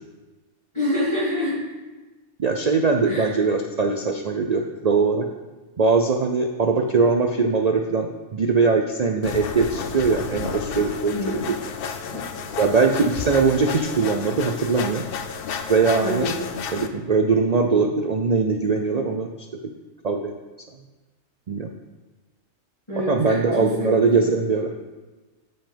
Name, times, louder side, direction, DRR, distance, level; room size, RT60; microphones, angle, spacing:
voice 1, 0.7-1.6 3.0-3.3 11.1-11.4 12.0-12.5 16.0-16.5 22.9-23.9 24.2-24.3, left 1 dB, 20° left, -12 dB, 3.1 m, -27 dB
voice 2, 2.4-5.3 5.8-11.4 12.6-15.0 15.7-16.3 16.7-19.3 20.0-20.3 21.5-21.7 23.1-24.7, right 4 dB, 65° right, 3 dB, 0.4 m, -21 dB
sound 1, 9.2-16.9, left 6 dB, 60° left, 0.6 m, -32 dB
7.8 x 5.6 x 5.1 m, 1.2 s
omnidirectional pair, 1.4 m